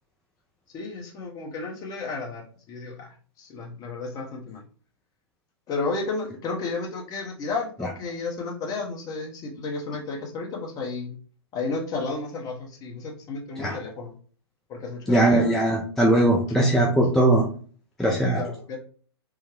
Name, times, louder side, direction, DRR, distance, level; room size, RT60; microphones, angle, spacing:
voice 1, 0.7-4.6 5.7-11.1 11.5-14.1 14.7-15.5 18.0-18.8, left 3 dB, 25° left, 1 dB, 0.8 m, -32 dB
voice 2, 15.1-17.4 18.0-18.4, right 1 dB, ahead, -2 dB, 0.4 m, -20 dB
3.4 x 2.1 x 3.2 m, 0.43 s
figure-of-eight pair, 115°, 14 cm